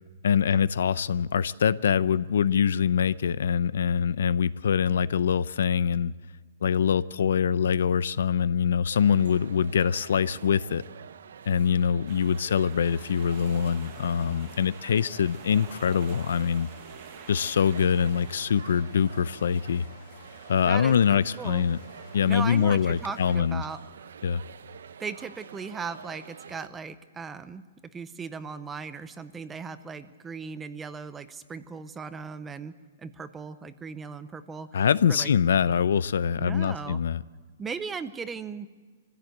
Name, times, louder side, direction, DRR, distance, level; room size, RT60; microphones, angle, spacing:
voice 1, 0.2-6.1 6.6-10.8 11.5-16.7 17.3-19.9 20.5-21.8 22.1-23.6 24.2-24.4 34.7-37.2, left 7 dB, 75° left, 0.6 m, -24 dB
sound 1, 8.9-26.7, right 7 dB, 75° right, 0.8 m, -47 dB
sound 2, 12.1-18.5, right 9 dB, 30° right, 1.2 m, -49 dB
sound 3, 12.8-23.4, left 8 dB, 40° left, 3.4 m, -54 dB
voice 2, 20.7-21.6 22.2-23.8 25.0-27.6 27.9-34.8 35.1-35.3 36.4-37.0 37.6-38.7, right 5 dB, 10° right, 0.6 m, -37 dB
24.5 x 15.0 x 7.9 m
hypercardioid pair, 175°, 0 cm